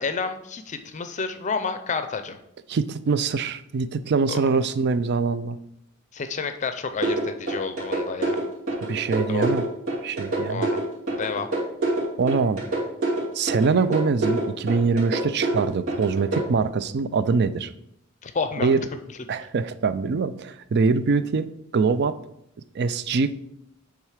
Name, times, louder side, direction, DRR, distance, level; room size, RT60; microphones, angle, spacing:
voice 1, 0.0-2.4 4.3-4.4 6.1-8.4 9.3-9.5 10.5-10.8 11.2-11.5 18.2-18.7, left 5 dB, 35° left, 9 dB, 0.5 m, -29 dB
voice 2, 2.7-5.6 8.8-9.6 10.0-10.7 12.2-12.6 13.3-17.7 18.6-18.8 19.3-21.5 21.7-22.2 22.7-23.3, right 4 dB, 55° right, 14 dB, 0.4 m, -23 dB
sound 1, 7.0-16.4, right 2 dB, 70° right, 2.6 m, -26 dB
8.8 x 3.7 x 4.8 m, 0.78 s
head